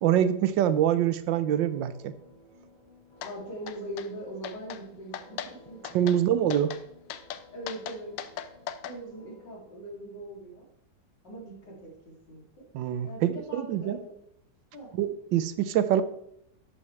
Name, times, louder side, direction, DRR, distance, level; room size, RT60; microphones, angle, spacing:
voice 1, 0.0-2.1 5.9-6.7 12.7-14.0 15.0-16.0, right 10 dB, 85° right, 13 dB, 1.4 m, -25 dB
sound 1, 1.3-9.6, left 3 dB, 35° left, 4.5 m, -56 dB
sound 2, 3.2-3.3 3.7-4.1 4.4-4.8 5.1-5.5 5.8-6.2 6.5-6.8 7.1-9.0, left 10 dB, 90° left, 1.4 m, -38 dB
voice 2, 3.2-5.8 6.1-6.2 7.5-8.1 8.8-10.7 11.2-12.7 13.0-14.1 14.7-14.9, right 1 dB, 70° left, -2 dB, 3.4 m, -41 dB
11.5 x 8.4 x 3.2 m, 0.75 s
omnidirectional pair, 2.0 m